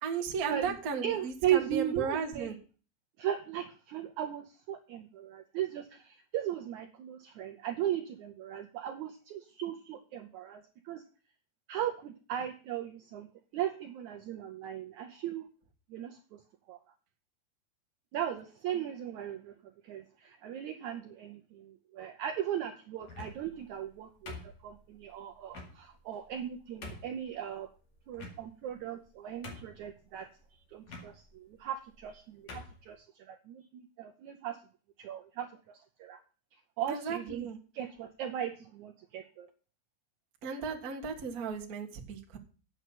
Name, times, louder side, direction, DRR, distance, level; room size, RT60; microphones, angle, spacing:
voice 1, 0.0-2.6 36.9-37.6 40.4-42.4, right 5 dB, 55° right, 1 dB, 1.0 m, -35 dB
voice 2, 1.0-2.5 3.2-11.0 11.7-13.3 13.5-15.5 15.9-16.4 16.7-16.8 18.1-27.7 28.1-30.3 30.7-34.6 35.0-36.2 36.5-37.5 37.7-39.5, right 11 dB, 80° right, 7 dB, 1.7 m, -37 dB
sound 1, 23.0-23.6 24.3-24.9 25.5-25.7 26.3-26.4 26.8-27.2 28.1-28.7 29.1-29.2 29.4-29.9 30.9-31.1 31.9-32.1 32.5-32.8, left 3 dB, 50° left, 3.1 m, -45 dB
8.8 x 6.7 x 7.7 m, 0.37 s
omnidirectional pair, 4.3 m